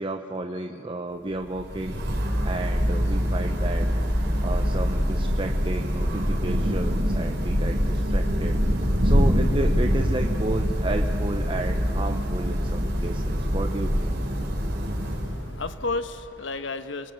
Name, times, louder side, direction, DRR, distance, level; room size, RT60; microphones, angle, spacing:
voice 1, 0.0-2.0 2.4-14.2, right 2 dB, 25° right, 5 dB, 0.8 m, -32 dB
Thunder / Rain, 1.4-15.8, equal, 60° right, 4.0 m, -24 dB
voice 2, 15.0-17.1, left 3 dB, 75° left, 10 dB, 1.2 m, -32 dB
28.0 x 21.0 x 8.0 m, 3.0 s
head